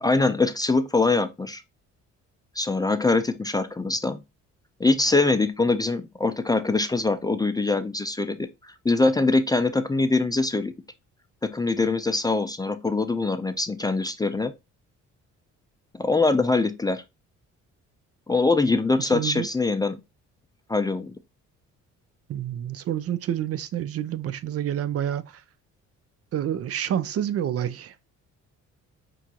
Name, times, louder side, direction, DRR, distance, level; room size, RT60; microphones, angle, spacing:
voice 1, 0.0-1.6 2.6-4.2 4.8-10.7 11.4-14.5 15.9-17.0 18.3-20.0 20.7-21.2, left 3 dB, 15° left, 0.4 m, -23 dB
voice 2, 19.0-19.5 22.3-25.4 26.3-28.1, right 10 dB, 50° right, 0.4 m, -28 dB
5.8 x 2.5 x 2.8 m
cardioid pair, 90°, 30 cm